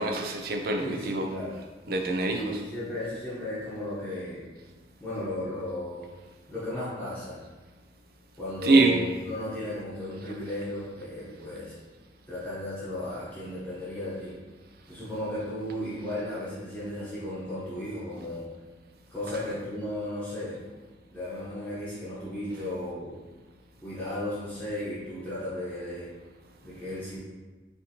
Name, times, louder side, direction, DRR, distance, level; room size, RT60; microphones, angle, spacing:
voice 1, 0.0-1.3 1.9-2.4 8.6-9.0, right 3 dB, 55° right, 3 dB, 0.4 m, -24 dB
voice 2, 0.8-1.6 2.4-4.4 5.0-6.1 6.5-7.4 8.4-11.7 12.3-14.3 14.9-18.5 19.1-20.6 21.1-23.2 23.8-26.1 26.6-27.2, left 1 dB, 10° left, -12 dB, 0.9 m, -35 dB
4.1 x 2.8 x 2.8 m, 1.2 s
head